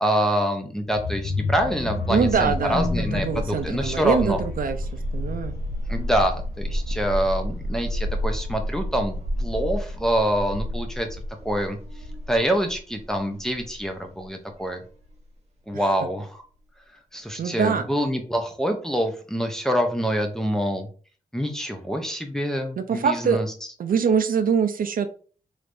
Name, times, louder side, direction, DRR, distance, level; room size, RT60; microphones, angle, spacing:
voice 1, 0.0-4.4 5.9-9.1 9.4-11.1 11.4-11.8 12.3-14.8 15.7-16.4 17.1-20.9 21.3-23.5, equal, 5° left, 3 dB, 0.5 m, -25 dB
sound 1, 0.9-6.6 7.0-7.3 7.6-7.7, left 3 dB, 80° left, 0.6 m, -31 dB
voice 2, 2.1-4.8 5.1-5.5 15.7-15.8 17.4-17.9 22.8-23.4 23.8-25.1, right 6 dB, 65° right, 9 dB, 0.4 m, -24 dB
sound 2, 2.3-14.3 14.6-14.7 15.0-15.1, equal, 45° right, 0.9 m, -31 dB
3.2 x 3.2 x 2.5 m, 0.40 s
wide cardioid pair, 145°, 16 cm